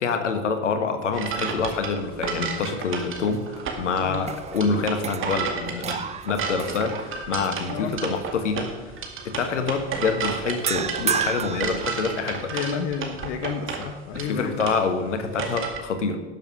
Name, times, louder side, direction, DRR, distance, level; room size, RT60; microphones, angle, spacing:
voice 1, 0.0-8.9 9.2-12.5 14.1-16.2, left 4 dB, 80° left, 8 dB, 1.4 m, -26 dB
sound 1, 1.1-15.8, right 5 dB, 35° right, 2.2 m, -32 dB
sound 2, 3.1-3.8 4.2-7.5 7.9-8.2 10.7-12.6, right 7 dB, 20° right, 0.6 m, -32 dB
voice 2, 12.5-14.6, left 6 dB, 60° left, 7 dB, 1.1 m, -30 dB
12.0 x 7.6 x 6.5 m, 1.3 s
figure-of-eight pair, 75°, 36 cm